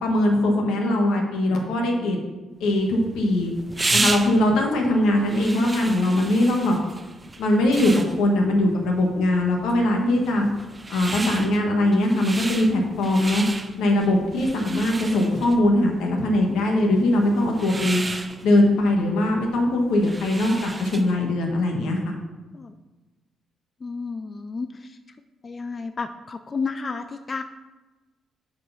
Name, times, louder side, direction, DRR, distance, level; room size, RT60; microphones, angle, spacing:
voice 1, 0.0-2.2 2.6-3.5 3.9-6.8 7.4-10.5 10.9-13.4 13.8-18.0 18.4-22.0, left 1 dB, 85° left, 1 dB, 1.4 m, -21 dB
sound 1, 2.7-21.2, right 2 dB, 20° right, 0.5 m, -33 dB
voice 2, 23.8-25.0 25.4-27.4, left 4 dB, 35° left, 9 dB, 0.4 m, -31 dB
6.4 x 4.6 x 5.6 m, 1.2 s
cardioid pair, 90°, 0 cm